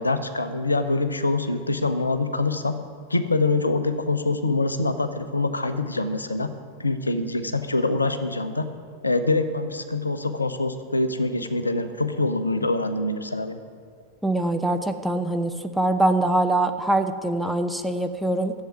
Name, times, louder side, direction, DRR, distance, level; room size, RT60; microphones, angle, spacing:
voice 1, 0.0-2.7 3.1-6.5 6.8-8.7 9.0-13.6, left 2 dB, 80° left, 10 dB, 0.7 m, -25 dB
voice 2, 14.2-18.5, right 2 dB, ahead, 5 dB, 0.8 m, -23 dB
10.5 x 7.5 x 9.4 m, 2.2 s
figure-of-eight pair, 90°, 0 cm